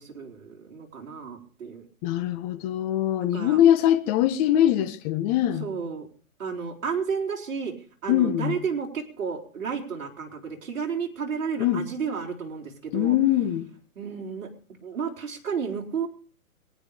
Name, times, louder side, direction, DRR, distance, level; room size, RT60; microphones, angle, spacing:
voice 1, 0.0-1.9 3.2-3.6 5.6-6.1 6.4-7.7 8.0-13.2 14.0-14.5 14.8-16.1, right 6 dB, 60° right, 4.6 m, -32 dB
voice 2, 2.0-5.7 8.1-8.6 11.6-11.9 12.9-13.7, left 11 dB, 25° left, 1.4 m, -22 dB
23.0 x 10.5 x 5.1 m
hypercardioid pair, 145°, 44 cm